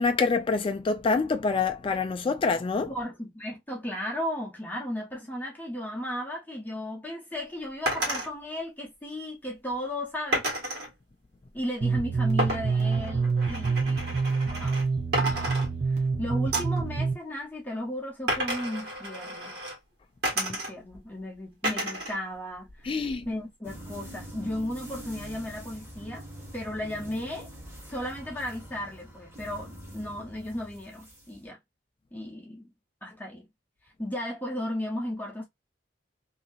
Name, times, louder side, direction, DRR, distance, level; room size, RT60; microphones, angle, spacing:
voice 1, 0.0-2.9 22.9-23.2, left 4 dB, 30° left, 0.3 m, -26 dB
voice 2, 2.9-10.4 11.5-14.1 14.4-14.8 15.2-15.6 16.2-19.6 20.3-26.2 26.5-27.5 27.9-31.6 32.1-32.7 33.0-33.5 34.0-35.4, left 1 dB, 10° left, 0.8 m, -35 dB
sound 1, 7.9-8.3 10.3-10.9 12.4-14.9 15.1-16.1 16.5-16.8 18.3-19.8 20.2-21.0 21.6-22.2 22.5-23.3, right 1 dB, 60° right, 1.5 m, -31 dB
sound 2, 11.8-17.1, right 4 dB, 35° right, 0.9 m, -27 dB
sound 3, 23.6-31.5, right 1 dB, 15° right, 1.1 m, -44 dB
2.8 x 2.7 x 2.3 m
head